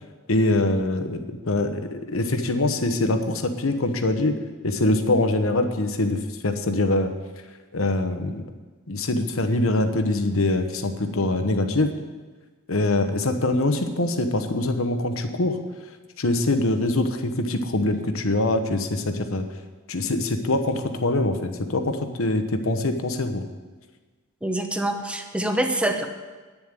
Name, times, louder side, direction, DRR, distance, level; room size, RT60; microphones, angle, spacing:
voice 1, 0.3-4.4 4.6-7.1 7.7-8.4 8.9-11.9 12.7-15.6 16.2-19.4 19.9-23.4, left 2 dB, 75° left, 7 dB, 1.1 m, -23 dB
voice 2, 24.4-26.1, right 1 dB, 5° right, 5 dB, 1.0 m, -25 dB
9.5 x 7.2 x 9.0 m, 1.3 s
head